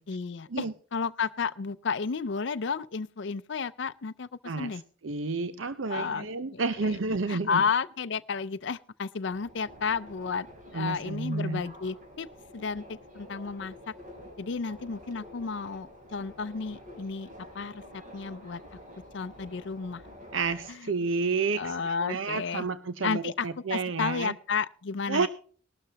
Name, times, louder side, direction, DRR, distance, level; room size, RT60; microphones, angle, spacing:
voice 1, 0.1-0.7 0.9-4.3 4.6-4.8 5.9-6.3 6.5-6.6 7.3-10.5 10.7-12.3 12.5-13.7 14.4-17.3 17.5-17.8 18.1-18.6 19.1-20.0 21.5-22.6 23.0-25.3, left 5 dB, 65° left, 11 dB, 0.5 m, -32 dB
voice 2, 4.4-7.6 10.7-11.7 20.3-24.3 25.1-25.3, right 4 dB, 85° right, 13 dB, 0.7 m, -30 dB
Subway metro underground, 9.3-20.7, equal, 40° right, 3.8 m, -49 dB
18.5 x 12.5 x 2.9 m, 0.44 s
head